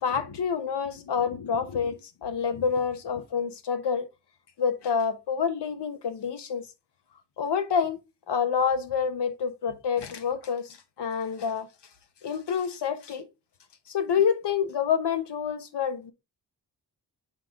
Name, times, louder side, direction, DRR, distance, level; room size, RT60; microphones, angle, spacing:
voice 1, 0.0-4.1 4.6-6.6 7.4-8.0 8.3-11.7 12.2-13.2 13.9-16.1, left 6 dB, 85° left, 1.1 m, -28 dB
7.5 x 3.8 x 3.7 m
wide cardioid pair, 160°, 40 cm